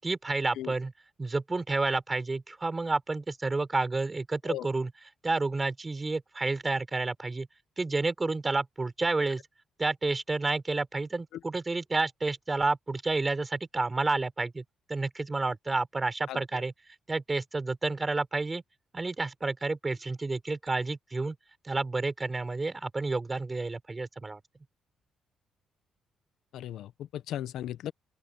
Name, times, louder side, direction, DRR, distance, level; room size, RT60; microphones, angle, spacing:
voice 1, 0.0-0.9 1.2-4.9 5.2-7.5 7.8-9.4 9.8-14.6 14.9-16.7 17.1-18.6 18.9-21.4 21.6-24.4, right 3 dB, 25° right, 5.2 m, -30 dB
voice 2, 26.5-27.9, left 12 dB, 80° left, 0.9 m, -36 dB
open air
cardioid pair, 90°, 0 cm